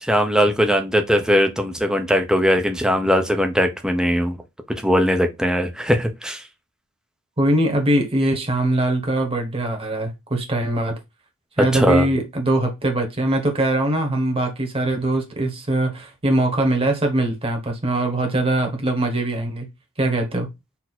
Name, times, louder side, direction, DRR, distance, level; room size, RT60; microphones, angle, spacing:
voice 1, 0.0-4.4 4.8-6.4 11.6-12.0, equal, 5° right, 0.7 m, -19 dB
voice 2, 7.4-10.9 11.6-19.7 20.0-20.5, right 1 dB, 25° right, 1.3 m, -22 dB
4.3 x 2.8 x 4.1 m
head